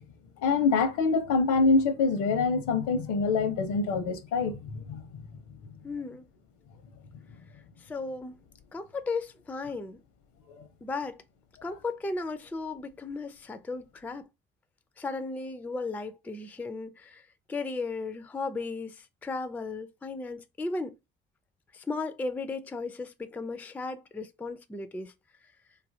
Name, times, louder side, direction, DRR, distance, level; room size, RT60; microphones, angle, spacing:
voice 1, 0.4-5.0 10.6-10.7, left 4 dB, 70° left, 0.8 m, -25 dB
voice 2, 5.8-6.3 7.8-8.4 8.7-10.0 10.8-11.2 11.6-14.2 15.0-17.2 17.5-21.0 21.7-25.1, left 3 dB, 5° left, 0.3 m, -35 dB
2.7 x 2.5 x 2.6 m
hypercardioid pair, 65°, 31 cm